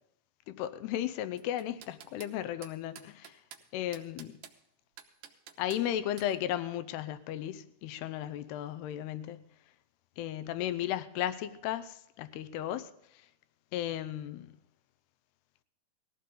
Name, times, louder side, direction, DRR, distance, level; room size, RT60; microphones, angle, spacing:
voice 1, 0.5-3.4 3.7-4.4 5.6-9.4 10.2-12.9 13.7-14.5, left 12 dB, 85° left, 2.8 m, -35 dB
sound 1, 1.4-2.3 2.6-3.6 3.9-4.6 5.0-5.8 6.2-6.3, right 9 dB, 70° right, 2.3 m, -50 dB
19.5 x 15.0 x 3.8 m
omnidirectional pair, 4.6 m